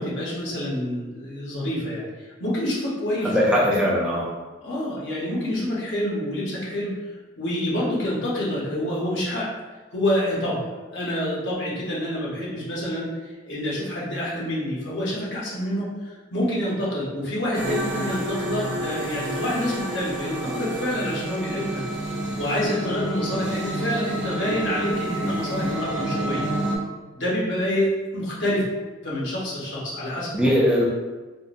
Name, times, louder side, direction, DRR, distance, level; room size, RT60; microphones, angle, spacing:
voice 1, 0.0-3.4 3.6-3.8 4.6-6.9 7.4-9.5 9.9-10.6 10.9-13.1 13.5-21.8 22.1-26.5 27.1-28.6 29.0-30.6, left 1 dB, 75° left, -6 dB, 1.0 m, -27 dB
voice 2, 3.2-4.3 30.3-30.8, equal, 5° right, -6 dB, 0.4 m, -20 dB
sound 1, 17.5-26.8, right 1 dB, 75° right, 0.6 m, -29 dB
3.6 x 2.1 x 2.5 m, 1.2 s
head